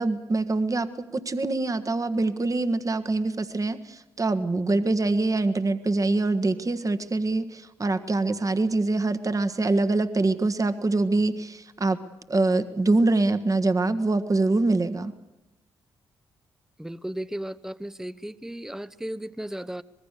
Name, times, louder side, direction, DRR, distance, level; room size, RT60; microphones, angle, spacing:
voice 1, 0.0-12.0 12.3-15.1, right 2 dB, 35° right, 10 dB, 1.5 m, -24 dB
voice 2, 16.8-19.8, right 1 dB, 5° right, 14 dB, 0.9 m, -35 dB
25.0 x 20.5 x 6.7 m, 0.97 s
supercardioid pair, 50°, 10 cm